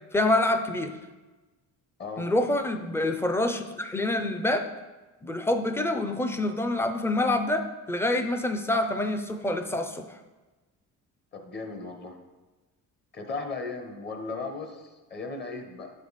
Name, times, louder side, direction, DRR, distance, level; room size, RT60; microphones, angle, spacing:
voice 1, 0.1-0.9 2.2-4.7 5.2-10.1, left 1 dB, 10° left, 7 dB, 0.4 m, -26 dB
voice 2, 2.0-2.3 11.3-12.2 13.1-15.9, left 3 dB, 30° left, 4 dB, 0.9 m, -36 dB
8.0 x 5.2 x 4.0 m, 1.2 s
cardioid pair, 135°, 33 cm